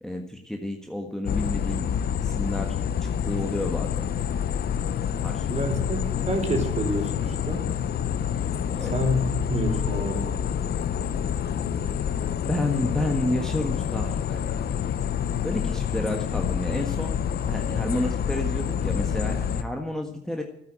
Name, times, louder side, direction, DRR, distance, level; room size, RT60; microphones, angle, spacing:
voice 1, 0.0-1.9 2.2-2.7 3.2-4.1 5.2-5.6 8.6-8.9 12.4-14.7 15.4-17.1 17.4-20.4, left 1 dB, 5° left, 2 dB, 1.6 m, -30 dB
sound 1, 1.3-19.6, left 8 dB, 50° left, 0.8 m, -27 dB
voice 2, 5.5-7.6 8.8-10.4, equal, 35° right, 3 dB, 4.9 m, -28 dB
12.5 x 9.7 x 9.0 m, 0.80 s
cardioid pair, 100°, 21 cm